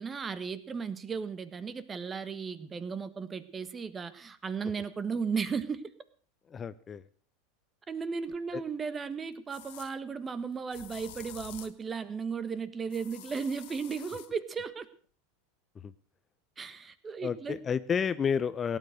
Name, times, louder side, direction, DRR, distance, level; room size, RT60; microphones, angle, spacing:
voice 1, 0.0-5.8 7.9-14.9 16.6-17.6, right 5 dB, 25° right, 14 dB, 1.4 m, -35 dB
voice 2, 6.5-7.0 8.5-8.6 15.8-15.9 17.2-18.8, left 7 dB, 25° left, 15 dB, 0.7 m, -30 dB
sound 1, 8.3-8.4 9.5-9.9 10.7-11.8 12.9-14.3, left 14 dB, 60° left, 1.2 m, -48 dB
17.5 x 9.5 x 6.4 m, 0.42 s
hypercardioid pair, 85°, 0 cm